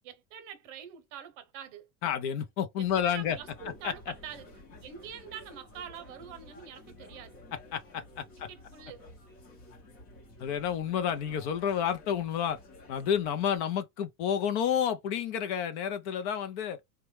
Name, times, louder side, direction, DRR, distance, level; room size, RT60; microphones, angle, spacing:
voice 1, 0.0-1.9 2.8-7.4 8.5-9.1, right 8 dB, 50° right, 0.9 m, -45 dB
voice 2, 2.0-3.4 3.8-3.9 7.7-8.5 10.4-12.6 12.9-16.8, left 8 dB, 50° left, 0.5 m, -30 dB
sound 1, 2.8-13.6, left 2 dB, 30° left, 0.9 m, -52 dB
3.0 x 2.3 x 3.1 m
supercardioid pair, 155°, 47 cm